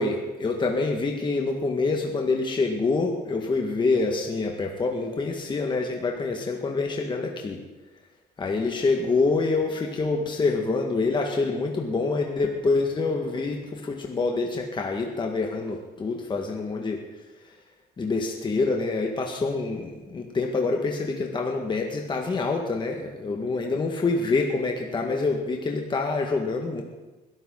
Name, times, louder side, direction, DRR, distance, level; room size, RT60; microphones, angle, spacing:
voice 1, 0.0-7.6 8.4-17.0 18.0-26.8, left 3 dB, 30° left, 1 dB, 1.9 m, -26 dB
21.0 x 12.5 x 4.1 m, 1.1 s
cardioid pair, 110°, 17 cm